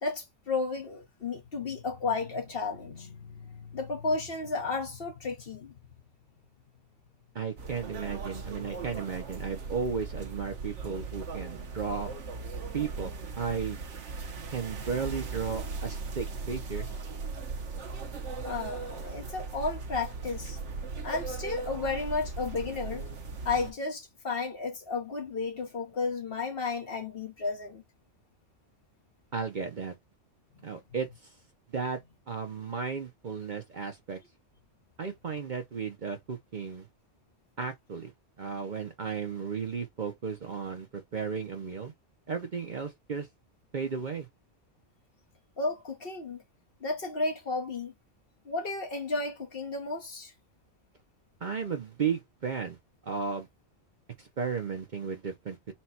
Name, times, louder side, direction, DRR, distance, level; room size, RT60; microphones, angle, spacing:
voice 1, 0.0-5.7 18.4-20.6 21.0-23.1 23.4-27.8 30.5-30.8 45.6-46.4 46.8-47.9 48.4-50.3, left 3 dB, 50° left, 1.2 m, -33 dB
voice 2, 7.3-12.1 12.7-13.8 14.5-16.9 29.3-29.9 30.6-31.3 31.7-32.0 32.3-34.2 35.0-36.9 37.6-38.1 38.4-41.9 42.3-43.3 43.7-44.3 51.4-52.8 53.0-53.5 54.2-55.6, right 5 dB, 45° right, 0.7 m, -34 dB
sound 1, 7.6-23.7, right 4 dB, 70° right, 1.2 m, -38 dB
4.4 x 2.3 x 4.1 m
omnidirectional pair, 1.3 m